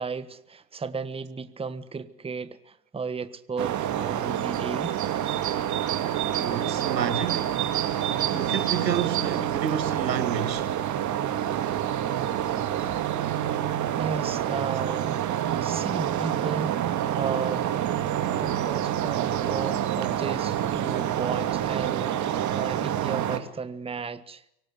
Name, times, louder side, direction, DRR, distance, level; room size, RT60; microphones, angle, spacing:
voice 1, 0.0-5.0 14.0-17.7 18.4-24.4, right 5 dB, 10° right, 1.4 m, -34 dB
sound 1, 3.6-23.4, right 11 dB, 35° right, 2.7 m, -27 dB
voice 2, 6.4-7.5 8.3-10.7, right 8 dB, 90° right, 2.1 m, -30 dB
24.5 x 18.0 x 7.9 m
hypercardioid pair, 95°, 49 cm